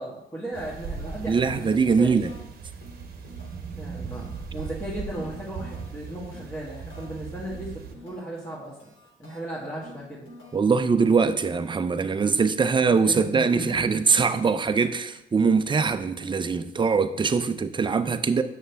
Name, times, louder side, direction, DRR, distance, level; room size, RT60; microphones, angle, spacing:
voice 1, 0.0-1.7 2.0-2.1 3.8-8.8 9.2-10.3 12.6-12.7 13.0-13.9, right 1 dB, 15° left, -6 dB, 1.5 m, -36 dB
sound 1, 0.5-7.9, right 5 dB, 50° right, 0.9 m, -38 dB
voice 2, 1.3-2.3 10.5-18.4, right 5 dB, 25° right, 10 dB, 0.5 m, -22 dB
sound 2, 1.6-1.9 2.2-2.5 2.8-3.7 4.0-7.2 7.5-8.4 8.6-10.8, left 1 dB, 75° left, 3.0 m, -49 dB
7.2 x 6.5 x 3.4 m, 0.90 s
cardioid pair, 90°, 20 cm